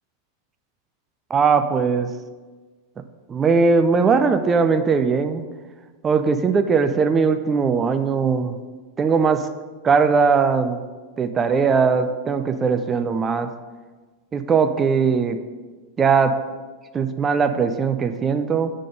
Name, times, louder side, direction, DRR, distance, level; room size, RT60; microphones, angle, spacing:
voice 1, 1.3-2.1 3.3-5.4 6.0-8.6 9.0-9.5 9.8-10.8 11.2-13.5 14.3-15.4 16.0-16.4 16.9-18.7, right 5 dB, 20° right, 8 dB, 0.4 m, -19 dB
7.4 x 3.7 x 5.2 m, 1.4 s
figure-of-eight pair, 90°, 0 cm